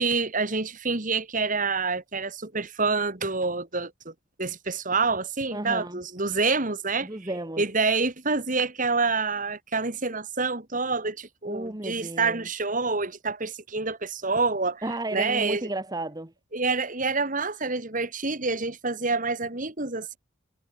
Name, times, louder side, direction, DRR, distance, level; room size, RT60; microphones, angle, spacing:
voice 1, 0.0-4.1 4.4-7.1 7.6-14.8 15.1-15.7 16.5-20.2, right 4 dB, 40° right, 2.7 m, -27 dB
voice 2, 5.5-6.0 7.0-7.7 11.4-12.5 14.8-16.3, right 1 dB, 20° right, 1.4 m, -33 dB
head